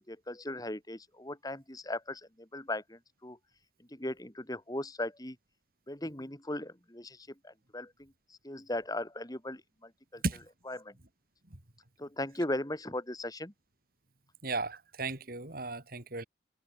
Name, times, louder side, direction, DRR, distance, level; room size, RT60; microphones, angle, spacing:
voice 1, 0.0-3.4 3.9-5.4 5.9-8.1 8.4-10.2 10.7-10.9 12.0-13.5, left 1 dB, 20° left, 2.9 m, -38 dB
voice 2, 14.4-16.2, right 3 dB, 50° right, 3.2 m, -35 dB
head